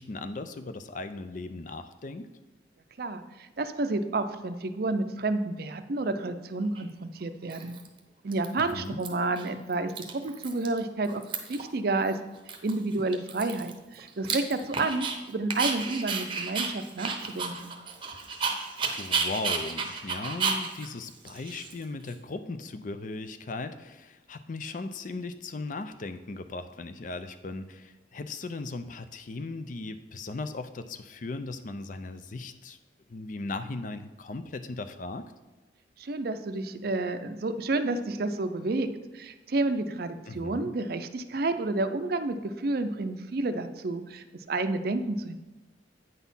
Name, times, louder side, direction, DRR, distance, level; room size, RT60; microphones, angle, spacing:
voice 1, 0.0-2.3 8.6-9.0 19.0-32.8 33.1-35.2 40.3-40.7, left 3 dB, 45° left, 10 dB, 0.5 m, -37 dB
voice 2, 3.0-7.8 8.2-11.2 11.5-12.2 12.6-17.7 36.0-38.9 39.1-45.4, right 2 dB, 55° right, 9 dB, 0.5 m, -30 dB
Dog, 6.8-6.9 7.5-8.0 8.3-9.1 9.4-9.5 9.7-10.8 11.0-11.7 12.1-12.2 12.5-15.2 15.5-22.1, right 5 dB, 25° right, 0.8 m, -32 dB
9.0 x 4.1 x 5.5 m, 1.1 s
head